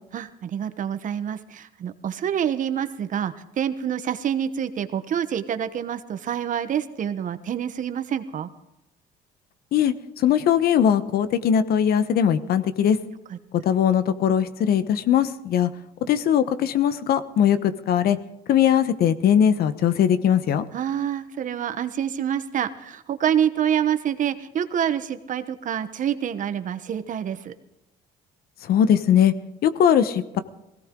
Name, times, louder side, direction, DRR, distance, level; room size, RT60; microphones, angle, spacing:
voice 1, 0.1-8.5 13.3-13.4 20.7-27.5, right 9 dB, 50° right, 11 dB, 1.1 m, -27 dB
voice 2, 9.7-13.0 13.6-15.7 16.1-18.2 18.5-20.6 28.7-29.3 29.6-30.4, left 9 dB, 65° left, 13 dB, 1.0 m, -20 dB
19.5 x 17.0 x 3.8 m, 0.96 s
cardioid pair, 110°, 17 cm